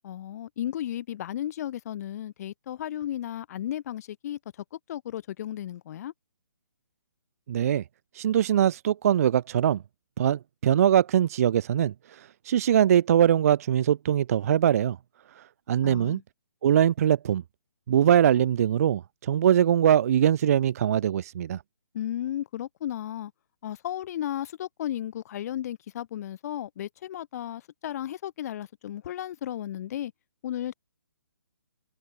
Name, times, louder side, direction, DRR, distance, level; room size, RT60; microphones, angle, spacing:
voice 1, 0.0-4.4 4.7-6.1 15.8-16.2 21.9-23.3 23.6-30.1 30.4-30.7, left 11 dB, 40° left, 6.1 m, -34 dB
voice 2, 7.5-7.8 8.1-9.8 10.2-15.0 15.4-16.2 16.6-17.4 17.9-21.6, right 10 dB, 40° right, 0.4 m, -22 dB
hypercardioid pair, 150°, 13 cm